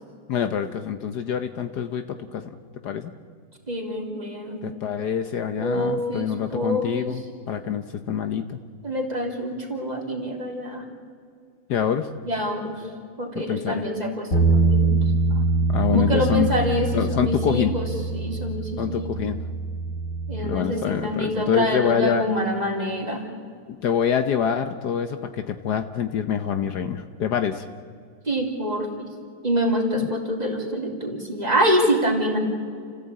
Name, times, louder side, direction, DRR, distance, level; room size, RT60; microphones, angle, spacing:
voice 1, 0.3-2.5 2.8-3.1 4.6-8.6 11.7-12.1 13.4-13.8 15.7-16.5 16.9-17.7 18.8-19.4 20.4-22.2 23.8-27.6, left 8 dB, 65° left, 9 dB, 1.4 m, -25 dB
voice 2, 3.7-4.6 5.6-7.1 8.8-10.9 12.2-12.8 13.2-15.0 15.3-15.5 15.9-19.1 20.3-23.2 28.3-28.9 29.4-32.4, equal, 20° right, 1 dB, 3.1 m, -26 dB
sound 1, 14.3-20.6, right 3 dB, 50° left, 2.3 m, -24 dB
29.5 x 15.0 x 8.7 m, 2.2 s
omnidirectional pair, 2.0 m